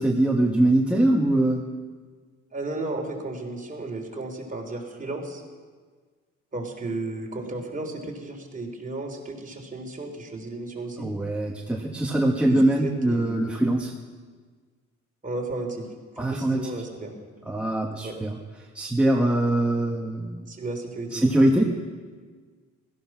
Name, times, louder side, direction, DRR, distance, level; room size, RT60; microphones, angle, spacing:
voice 1, 0.0-1.6 11.0-13.9 16.2-16.7 17.5-18.4 18.7-20.4 21.1-21.6, right 1 dB, 5° right, -1 dB, 1.4 m, -22 dB
voice 2, 2.5-5.4 6.5-11.1 12.4-13.4 15.2-15.9 16.3-17.1 18.0-18.2 20.5-21.2, right 2 dB, 25° right, 1 dB, 3.7 m, -34 dB
16.5 x 14.0 x 6.2 m, 1.5 s
cardioid pair, 90°, 30 cm